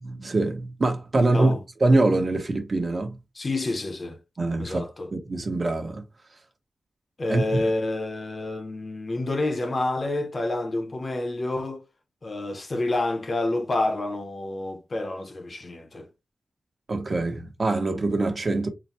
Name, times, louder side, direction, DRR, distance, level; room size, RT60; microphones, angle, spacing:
voice 1, 0.0-3.2 4.4-4.9 5.1-6.0 7.3-7.6 16.9-18.7, right 2 dB, 40° right, 1.0 m, -24 dB
voice 2, 1.3-1.6 3.3-4.2 4.6-5.1 7.2-11.8 12.2-16.1, left 2 dB, 40° left, 0.8 m, -28 dB
4.0 x 2.2 x 4.3 m
wide cardioid pair, 135°, 0 cm